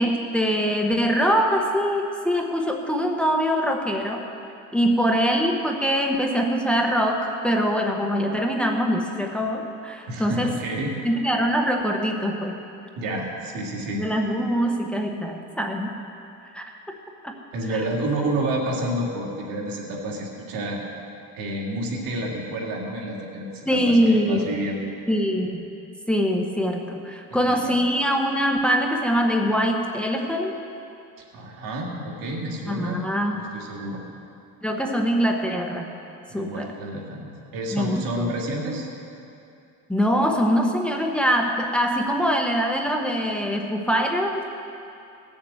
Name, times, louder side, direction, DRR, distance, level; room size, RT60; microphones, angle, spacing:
voice 1, 0.0-4.2 4.7-10.6 11.0-12.6 13.9-15.9 16.5-17.0 17.2-17.3 23.7-24.4 25.1-25.6 26.1-30.6 32.7-33.4 34.6-35.9 36.3-36.7 37.7-38.3 39.9-44.4, equal, 5° left, 1 dB, 1.0 m, -23 dB
voice 2, 10.1-10.9 12.9-14.0 17.5-20.8 21.3-24.9 27.3-27.8 31.3-33.0 33.3-34.0 36.3-38.9, right 1 dB, 85° right, -2 dB, 2.7 m, -29 dB
18.0 x 7.2 x 7.7 m, 2.6 s
cardioid pair, 145°, 33 cm